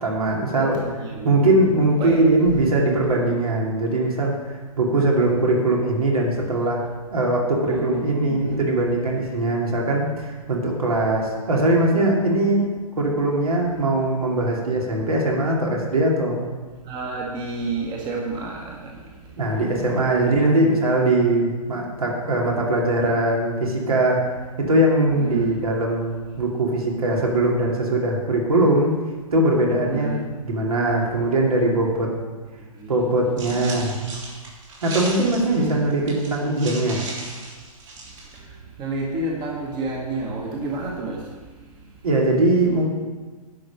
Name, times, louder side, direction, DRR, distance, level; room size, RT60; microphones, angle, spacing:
voice 1, 0.0-6.8 7.1-12.7 13.0-16.5 19.4-24.2 24.6-29.0 29.3-30.1 30.4-32.1 32.9-33.9 34.8-37.1 42.0-42.8, right 1 dB, 70° right, -2 dB, 2.6 m, -21 dB
voice 2, 0.6-1.5 2.0-2.2 7.6-8.6 16.9-18.9 20.1-20.2 25.2-25.6 29.9-30.2 32.8-32.9 33.5-33.9 35.5-35.9 38.3-38.4 38.8-41.3, right 3 dB, 20° right, -1 dB, 1.3 m, -30 dB
sound 1, 33.4-38.4, right 2 dB, 55° right, 3.4 m, -36 dB
10.5 x 5.5 x 6.7 m, 1.4 s
figure-of-eight pair, 130°, 19 cm